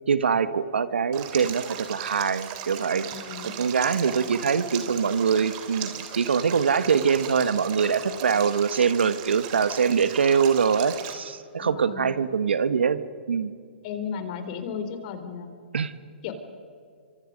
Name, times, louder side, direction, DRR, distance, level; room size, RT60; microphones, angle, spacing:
voice 1, 0.1-3.1 3.6-13.0 13.3-13.5 15.7-15.9, right 6 dB, 85° right, 13 dB, 1.4 m, -23 dB
Stream, 1.1-11.1, right 9 dB, 40° right, 3.4 m, -37 dB
voice 2, 2.9-3.5 11.6-12.1 13.8-15.5 16.2-16.3, left 7 dB, 45° left, 8 dB, 3.8 m, -35 dB
28.5 x 25.0 x 5.3 m, 2.2 s
hypercardioid pair, 135°, 6 cm